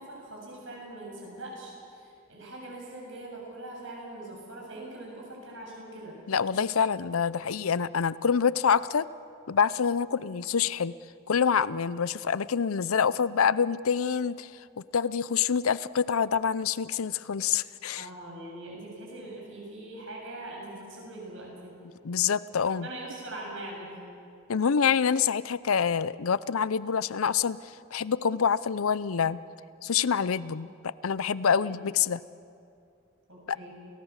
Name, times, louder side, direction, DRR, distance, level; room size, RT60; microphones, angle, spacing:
voice 1, 0.0-6.2 6.5-6.6 17.9-21.7 22.7-24.0 31.5-31.8 33.3-33.7, right 1 dB, 65° right, -2 dB, 7.6 m, -42 dB
voice 2, 6.3-9.1 9.5-10.9 11.3-14.5 14.9-18.1 22.0-22.9 24.5-27.6 27.9-29.4 29.8-32.2 33.5-33.6, left 7 dB, 85° left, 18 dB, 0.6 m, -26 dB
29.0 x 18.0 x 7.3 m, 2.5 s
head